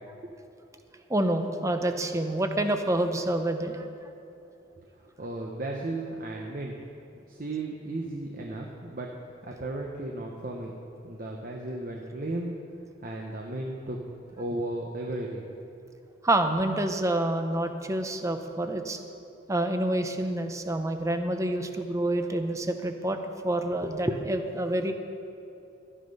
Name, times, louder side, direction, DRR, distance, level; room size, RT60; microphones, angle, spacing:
voice 1, 1.1-3.9 16.2-19.0 19.5-24.9, right 1 dB, 15° right, 6 dB, 0.7 m, -27 dB
voice 2, 5.2-6.7 7.3-9.1 9.4-10.7 11.0-12.5 13.0-14.0 14.4-15.5, right 2 dB, 45° right, 0 dB, 0.9 m, -35 dB
13.5 x 10.0 x 5.4 m, 2.8 s
head